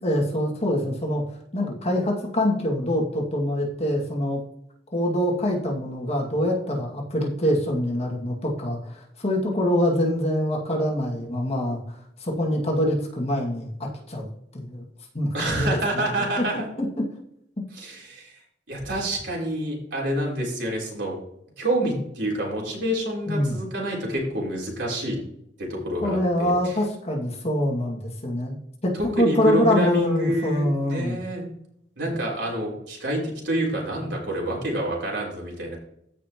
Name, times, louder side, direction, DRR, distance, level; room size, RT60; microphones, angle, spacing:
voice 1, 0.0-1.2 1.5-4.4 4.9-14.8 15.1-15.7 15.9-16.1 16.4-17.0 17.6-17.7 21.8-21.9 23.3-23.6 26.0-28.6 28.8-31.2, left 1 dB, 35° left, -1 dB, 2.1 m, -25 dB
voice 2, 15.3-16.7 17.7-18.3 18.7-21.2 21.6-25.2 25.6-26.7 28.9-31.4 32.0-35.8, right 1 dB, 70° right, -3 dB, 3.9 m, -27 dB
15.0 x 5.5 x 3.0 m, 0.74 s
head